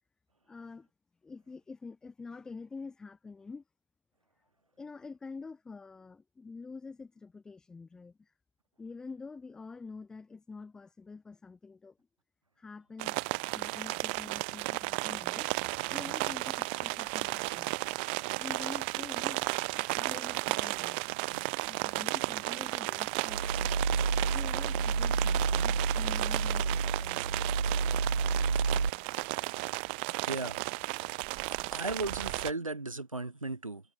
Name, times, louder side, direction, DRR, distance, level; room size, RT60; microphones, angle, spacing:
voice 1, 0.5-0.9 1.2-3.6 4.8-8.3 8.8-12.0 12.6-15.5 15.9-17.7 18.4-21.0 21.7-23.8 24.3-27.4, left 4 dB, 5° left, 1.5 m, -47 dB
sound 1, 13.0-32.5, right 31 dB, 20° right, 1.9 m, -34 dB
sound 2, 23.3-28.9, right 4 dB, 70° right, 2.8 m, -30 dB
voice 2, 30.3-30.6 31.5-33.8, right 2 dB, 85° right, 6.8 m, -36 dB
figure-of-eight pair, 150°, 17 cm